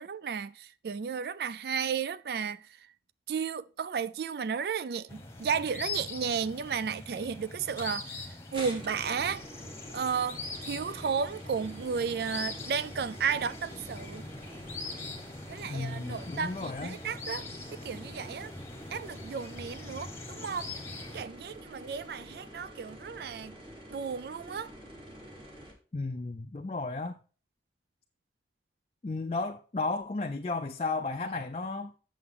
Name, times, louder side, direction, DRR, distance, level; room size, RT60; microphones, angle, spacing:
voice 1, 0.0-2.7 3.3-9.4 9.9-14.2 15.5-17.5 17.7-18.5 18.9-20.7 21.1-23.6 23.9-24.7, right 6 dB, 60° right, 0.3 m, -33 dB
sound 1, 5.1-21.2, left 3 dB, 15° left, 1.1 m, -42 dB
sound 2, 7.8-7.9 8.5-25.7, right 1 dB, 30° right, 1.8 m, -48 dB
voice 2, 15.6-17.0 25.9-27.2 29.0-31.9, left 3 dB, 35° left, 0.4 m, -34 dB
7.8 x 6.8 x 3.6 m
head